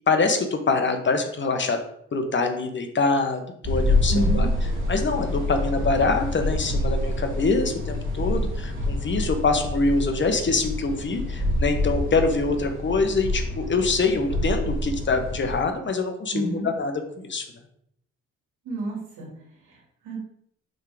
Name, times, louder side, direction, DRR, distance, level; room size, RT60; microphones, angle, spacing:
voice 1, 0.1-1.8 2.1-4.5 4.9-17.4, left 3 dB, 40° left, 6 dB, 1.2 m, -24 dB
sound 1, 3.6-15.6, left 1 dB, 40° right, 2.2 m, -27 dB
voice 2, 4.1-4.5 16.3-16.7 18.6-19.3 20.0-20.2, right 1 dB, 85° right, -2 dB, 2.7 m, -28 dB
6.4 x 3.7 x 5.0 m, 0.71 s
cardioid pair, 90°, 30 cm